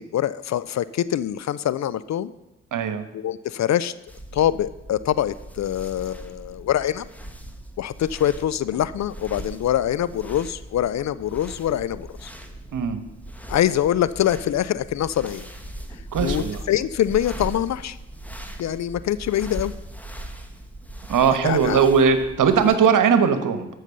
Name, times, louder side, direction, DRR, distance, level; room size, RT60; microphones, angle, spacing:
voice 1, 0.0-2.3 3.1-3.9 4.3-7.1 7.8-12.3 13.5-15.5 16.2-18.0 18.6-19.7 21.4-21.9, left 11 dB, 50° left, 17 dB, 0.5 m, -24 dB
voice 2, 2.7-3.0 12.7-13.0 16.1-16.6 21.1-23.7, right 6 dB, 55° right, 10 dB, 1.3 m, -19 dB
sound 1, 4.1-22.8, right 1 dB, 5° left, 1.5 m, -39 dB
13.0 x 5.6 x 6.8 m, 0.97 s
hypercardioid pair, 40°, 37 cm